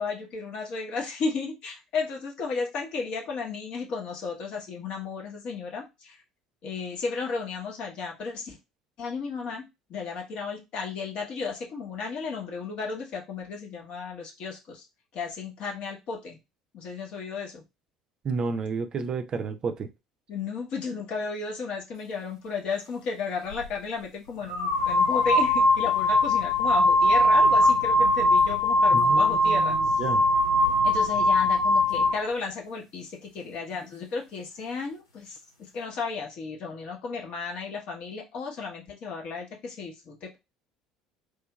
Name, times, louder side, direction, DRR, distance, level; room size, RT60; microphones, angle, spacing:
voice 1, 0.0-6.2 6.6-8.6 9.0-14.8 15.1-16.4 16.7-17.6 20.3-30.0 30.8-35.4 35.7-40.4, left 4 dB, 50° left, 1.0 m, -34 dB
voice 2, 18.2-19.9 28.9-30.2, right 5 dB, 40° right, 0.4 m, -31 dB
sound 1, 23.5-23.7 24.5-32.2, left 1 dB, 85° left, 0.6 m, -21 dB
3.1 x 2.7 x 2.3 m
figure-of-eight pair, 60°, 2 cm